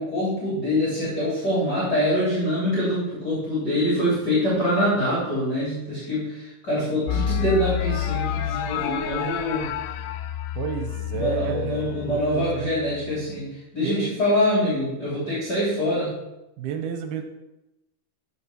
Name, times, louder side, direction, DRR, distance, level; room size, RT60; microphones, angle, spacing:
voice 1, 0.0-9.7 11.1-16.2, equal, 25° left, -8 dB, 3.9 m, -24 dB
sound 1, 7.1-13.0, left 10 dB, 80° left, 2.3 m, -29 dB
voice 2, 10.6-12.7 13.8-14.1 16.6-17.2, right 7 dB, 80° right, 7 dB, 2.7 m, -31 dB
14.5 x 6.1 x 4.4 m, 0.93 s
omnidirectional pair, 4.5 m